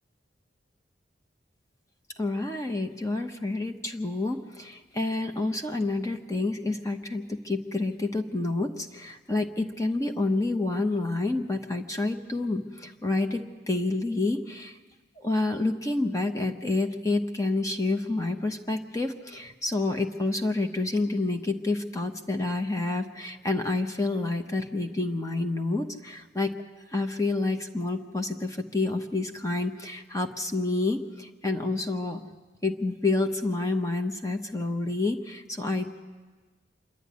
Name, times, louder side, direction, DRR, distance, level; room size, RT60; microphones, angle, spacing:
voice 1, 2.2-14.8 15.2-26.5 26.9-32.2 32.6-35.9, left 2 dB, 20° left, 4 dB, 0.9 m, -28 dB
26.5 x 12.0 x 9.4 m, 1.3 s
head